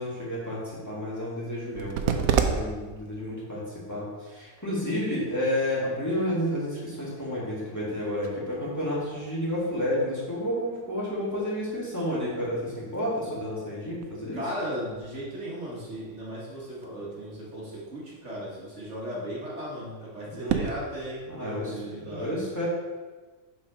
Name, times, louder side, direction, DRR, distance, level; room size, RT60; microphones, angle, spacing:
voice 1, 0.0-3.6 3.9-14.4 20.3-20.6 21.3-22.7, left 1 dB, 10° left, -8 dB, 2.1 m, -31 dB
sound 1, 1.6-20.7, right 7 dB, 80° right, 1.1 m, -36 dB
voice 2, 14.3-22.4, equal, 55° right, -6 dB, 2.0 m, -36 dB
6.3 x 5.1 x 5.1 m, 1.3 s
omnidirectional pair, 1.5 m